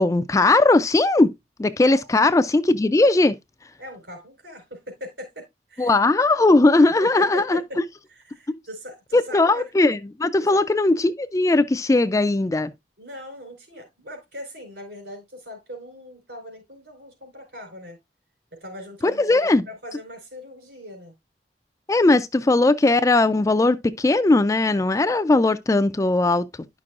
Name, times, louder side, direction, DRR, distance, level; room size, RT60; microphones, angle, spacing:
voice 1, 0.0-1.3 1.6-3.4 5.8-7.6 8.5-8.6 9.1-12.7 19.0-19.7 21.9-26.5, left 2 dB, 20° left, 0.3 m, -19 dB
voice 2, 3.8-5.4 5.7-6.0 7.0-7.8 8.1-9.7 10.4-10.7 13.0-18.0 18.6-19.4 19.6-21.1, equal, 70° right, 4.3 m, -40 dB
10.5 x 6.0 x 2.4 m
head